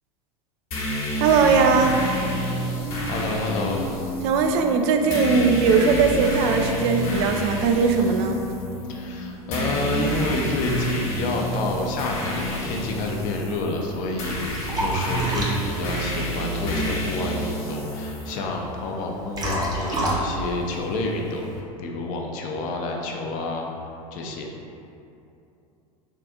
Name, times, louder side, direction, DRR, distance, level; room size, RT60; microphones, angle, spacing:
sound 1, 0.7-18.3, right 1 dB, 70° left, 1.1 m, -29 dB
voice 1, 1.2-2.0 4.2-8.4, right 5 dB, 50° right, 5 dB, 0.4 m, -19 dB
sound 2, 1.6-13.7, left 2 dB, 75° right, 1.2 m, -35 dB
voice 2, 3.1-3.8 8.9-23.7 24.1-24.5, left 2 dB, 45° left, 1 dB, 0.6 m, -29 dB
Liquid, 13.8-21.6, right 1 dB, 20° right, 0.7 m, -31 dB
3.6 x 2.5 x 3.5 m, 2.7 s
figure-of-eight pair, 80°, 19 cm